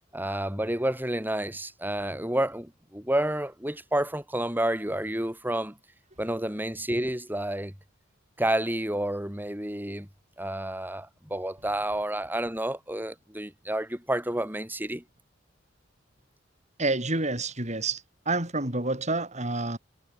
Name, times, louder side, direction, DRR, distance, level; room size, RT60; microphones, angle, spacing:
voice 1, 0.1-5.8 6.2-7.7 8.4-10.1 10.4-15.0, right 1 dB, 10° right, 6.9 m, -30 dB
voice 2, 16.8-19.8, right 2 dB, 35° right, 7.4 m, -28 dB
head